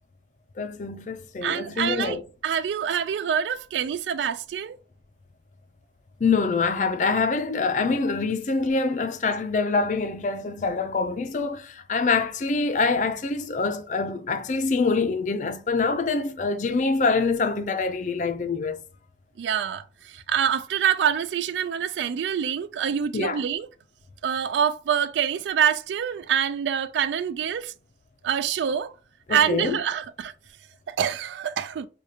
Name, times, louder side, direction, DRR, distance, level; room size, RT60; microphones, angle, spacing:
voice 1, 0.6-2.2 6.2-18.8 23.1-23.4 29.3-29.8, left 4 dB, 45° left, 0.4 m, -25 dB
voice 2, 1.4-2.2 2.4-4.8 19.4-23.7 24.2-27.7 28.2-28.9 29.3-30.3 30.9-31.9, right 8 dB, 80° right, 0.3 m, -26 dB
4.9 x 2.2 x 2.7 m
head